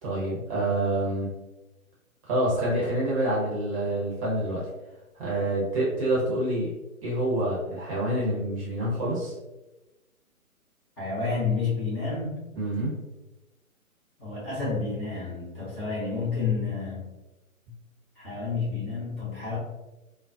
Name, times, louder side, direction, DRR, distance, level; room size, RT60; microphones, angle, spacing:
voice 1, 0.0-1.3 2.3-4.6 5.2-6.7 7.0-9.3 12.5-12.9, right 1 dB, 25° right, -5 dB, 0.8 m, -27 dB
voice 2, 11.0-12.4 14.2-17.1 18.1-19.6, left 4 dB, 15° left, -11 dB, 0.8 m, -30 dB
3.8 x 2.1 x 2.5 m, 1.0 s
figure-of-eight pair, 130°, 43 cm